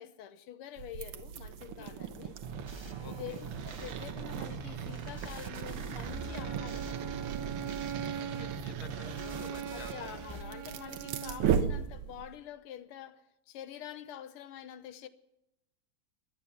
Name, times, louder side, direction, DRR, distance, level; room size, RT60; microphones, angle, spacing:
voice 1, 0.0-2.3 3.0-7.1 9.6-13.2 13.5-15.1, left 10 dB, 85° left, 1.8 m, -46 dB
sound 1, 0.8-12.3, right 8 dB, 80° right, 1.8 m, -37 dB
sound 2, 2.4-10.4, right 4 dB, 25° right, 0.6 m, -43 dB
voice 2, 3.0-3.4 8.2-10.1 11.7-11.8, left 6 dB, 70° left, 2.0 m, -50 dB
Bowed string instrument, 6.1-11.5, right 8 dB, 60° right, 1.1 m, -42 dB
18.5 x 11.5 x 5.8 m
omnidirectional pair, 2.4 m